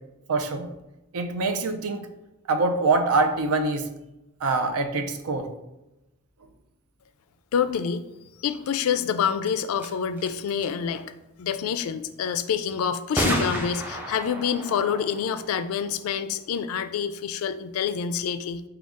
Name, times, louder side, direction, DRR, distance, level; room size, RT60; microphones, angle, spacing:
voice 1, 0.3-0.7 1.1-2.1 2.5-3.9 4.4-5.5, right 3 dB, 85° right, 6 dB, 0.5 m, -24 dB
voice 2, 7.5-8.1 8.4-18.6, left 7 dB, 80° left, 12 dB, 0.3 m, -27 dB
sound 1, 9.5-9.6 9.8-9.9 10.2-10.7 13.2-16.5, equal, 10° right, 0.3 m, -31 dB
5.1 x 2.3 x 3.5 m, 0.97 s
head